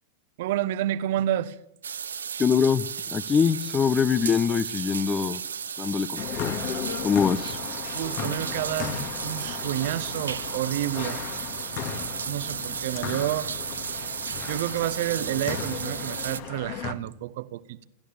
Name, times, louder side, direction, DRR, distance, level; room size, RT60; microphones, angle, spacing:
voice 1, 0.4-1.6 7.9-11.2 12.2-13.5 14.5-17.9, right 13 dB, 55° right, 1.0 m, -29 dB
sound 1, 1.8-16.4, right 7 dB, 70° right, 0.7 m, -34 dB
voice 2, 2.4-2.9 3.1-5.4 5.8-6.6 7.0-7.6, left 6 dB, 20° left, 0.8 m, -23 dB
sound 2, 6.2-16.9, left 9 dB, 45° left, 1.9 m, -35 dB
27.5 x 13.5 x 7.0 m
figure-of-eight pair, 90°, 0 cm